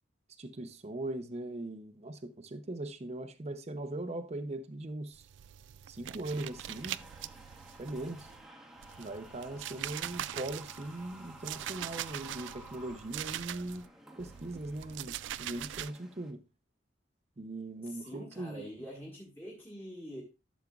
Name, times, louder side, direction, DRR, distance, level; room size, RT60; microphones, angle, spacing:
voice 1, 0.4-5.3 5.9-7.0 7.8-8.3 9.0-13.8 14.2-16.4 17.4-18.6, right 2 dB, 35° right, 0.7 m, -40 dB
sound 1, 5.1-8.4 8.8-13.9 14.2-15.9, right 12 dB, 80° right, 0.3 m, -42 dB
sound 2, 6.3-16.3, right 1 dB, ahead, 1.1 m, -53 dB
voice 2, 17.9-20.2, equal, 15° left, 1.7 m, -45 dB
12.0 x 7.2 x 2.4 m
head